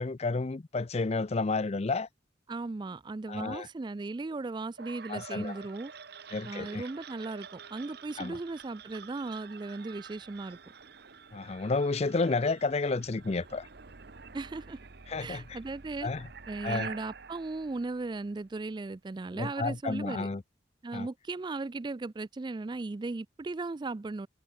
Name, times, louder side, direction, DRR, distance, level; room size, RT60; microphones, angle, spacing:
voice 1, 0.0-2.1 3.3-3.7 5.1-5.6 6.3-6.8 8.2-8.4 11.3-13.7 15.1-15.6 16.0-16.2 16.6-16.9 19.4-20.4 20.9-21.1, left 3 dB, 35° left, 0.5 m, -31 dB
voice 2, 2.5-5.9 6.5-10.6 14.3-14.8 15.2-16.1 16.5-20.3 20.8-24.3, right 3 dB, 25° right, 0.3 m, -37 dB
sound 1, 4.8-18.7, right 5 dB, 60° right, 1.1 m, -48 dB
head